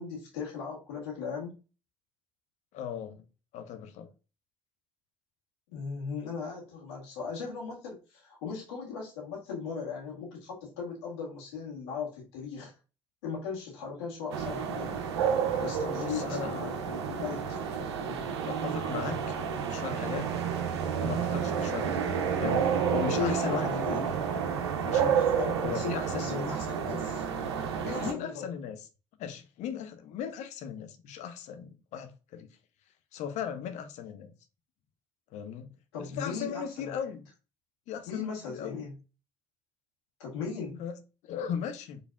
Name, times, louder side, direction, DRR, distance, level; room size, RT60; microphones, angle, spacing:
voice 1, 0.0-1.6 5.7-12.7 13.2-15.0 15.6-17.6 23.1-24.0 25.1-27.2 27.8-28.5 35.9-37.0 38.1-38.9 40.2-40.8, left 5 dB, 75° left, 1.7 m, -38 dB
voice 2, 2.7-3.2 3.5-4.1 15.9-16.6 18.4-19.4 19.7-20.3 21.0-24.1 24.8-25.2 25.6-26.6 28.0-28.9 29.2-32.5 33.1-34.3 35.3-35.7 36.0-37.3 37.9-38.8 40.8-41.0 41.2-42.0, left 8 dB, 60° left, 0.7 m, -37 dB
sound 1, 14.3-28.1, right 7 dB, 80° right, 0.5 m, -30 dB
5.0 x 3.2 x 2.3 m
hypercardioid pair, 55°, 14 cm